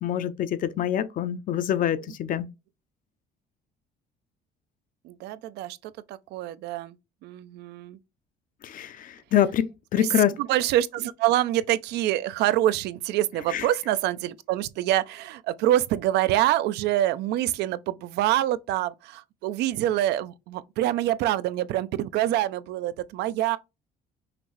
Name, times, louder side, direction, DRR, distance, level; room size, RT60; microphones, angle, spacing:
voice 1, 0.0-2.5 8.6-9.7 9.9-10.4 13.5-13.6, left 10 dB, 55° left, 0.6 m, -25 dB
voice 2, 5.0-7.0 7.2-8.0 10.0-23.6, right 13 dB, 80° right, 0.5 m, -26 dB
5.9 x 2.6 x 3.1 m
cardioid pair, 110°, 17 cm